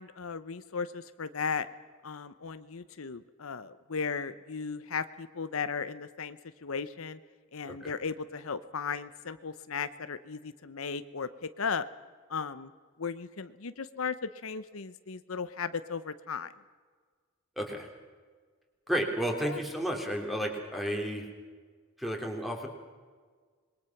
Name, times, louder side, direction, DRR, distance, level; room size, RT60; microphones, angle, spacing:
voice 1, 0.0-1.7 2.0-7.2 7.5-11.9 12.3-12.7 13.0-16.5 19.4-19.6, left 5 dB, 75° left, 12 dB, 0.8 m, -36 dB
voice 2, 17.6-17.9 18.9-21.3 22.0-22.7, equal, ahead, 2 dB, 3.2 m, -32 dB
26.5 x 21.5 x 6.0 m, 1.5 s
head